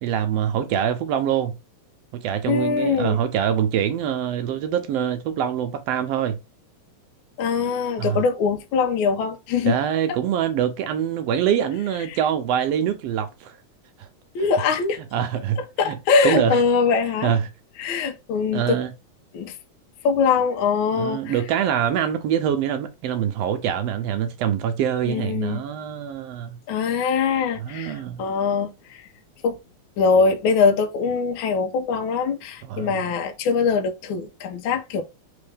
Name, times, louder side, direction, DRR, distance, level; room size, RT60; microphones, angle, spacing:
voice 1, 0.0-1.6 2.2-6.4 8.0-8.2 9.6-13.6 14.0-14.1 15.1-16.0 16.2-16.6 17.2-17.4 18.5-18.9 20.9-26.6 27.6-28.2 32.6-33.0, right 9 dB, 75° right, 1.5 m, -24 dB
voice 2, 2.5-3.2 7.4-9.8 14.3-15.0 15.8-17.3 17.8-18.8 19.3-19.5 20.0-21.3 25.0-25.6 26.7-29.0 29.4-29.6 30.0-35.0, left 5 dB, 85° left, 1.1 m, -22 dB
4.3 x 3.5 x 3.4 m
omnidirectional pair, 3.4 m